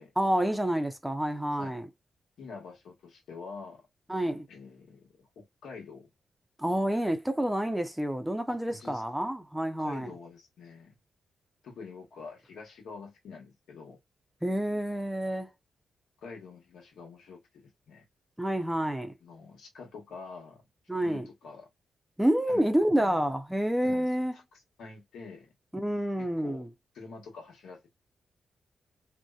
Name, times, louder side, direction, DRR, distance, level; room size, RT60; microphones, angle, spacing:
voice 1, 0.2-1.9 4.1-4.5 6.6-10.1 14.4-15.5 18.4-19.1 20.9-21.3 22.2-24.3 25.7-26.7, right 1 dB, 5° right, 0.4 m, -28 dB
voice 2, 2.4-3.8 4.5-6.1 8.5-9.3 9.8-10.9 11.6-14.0 16.2-18.0 19.2-20.6 21.0-21.7 22.5-22.6 22.9-23.2 23.8-25.5 26.2-26.7 26.9-27.9, left 4 dB, 90° left, 1.0 m, -46 dB
2.7 x 2.1 x 2.3 m
cardioid pair, 100°, 0 cm